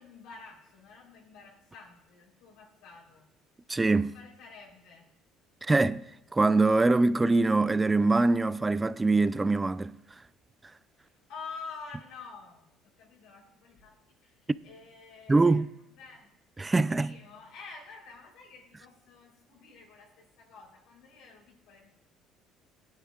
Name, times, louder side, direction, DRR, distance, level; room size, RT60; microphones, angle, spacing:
voice 1, 0.0-3.3 4.1-5.1 11.0-15.6 16.0-16.3 17.0-21.9, left 4 dB, 80° left, 3.4 m, -48 dB
voice 2, 3.7-4.1 5.6-6.0 6.3-10.0 15.3-15.7 16.6-17.1, right 3 dB, 15° right, 0.3 m, -23 dB
18.0 x 9.7 x 2.4 m
supercardioid pair, 95°, 0 cm